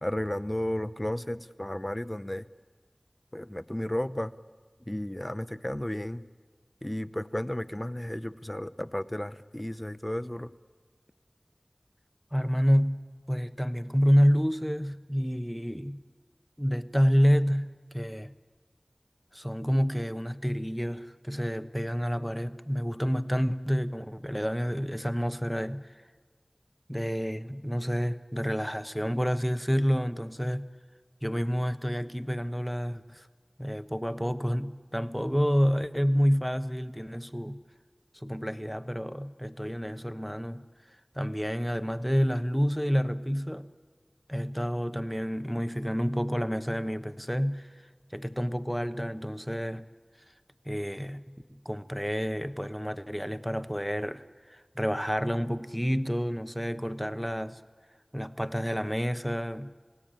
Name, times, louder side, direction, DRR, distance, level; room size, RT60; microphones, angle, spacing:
voice 1, 0.0-2.4 3.3-4.3 4.9-6.2 6.8-10.5, left 1 dB, 25° left, 0.7 m, -33 dB
voice 2, 12.3-16.0 16.6-18.3 19.3-25.9 26.9-30.7 31.2-33.3 33.6-37.6 38.1-40.7 41.1-43.7 44.3-47.7 48.1-49.9 50.6-51.3 51.6-57.6 58.1-59.7, equal, ahead, 1.0 m, -29 dB
29.0 x 17.0 x 9.0 m
wide cardioid pair, 45°, 0 cm